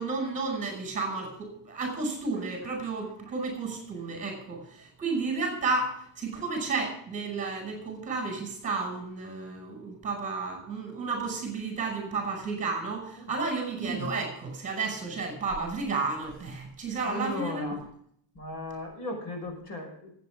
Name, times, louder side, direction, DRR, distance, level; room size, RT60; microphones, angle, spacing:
voice 1, 0.0-17.8, right 4 dB, 15° right, 2 dB, 5.5 m, -32 dB
voice 2, 17.0-17.9 18.3-20.1, left 1 dB, 40° left, 4 dB, 5.7 m, -37 dB
24.5 x 9.2 x 3.6 m, 0.65 s
cardioid pair, 175°, 49 cm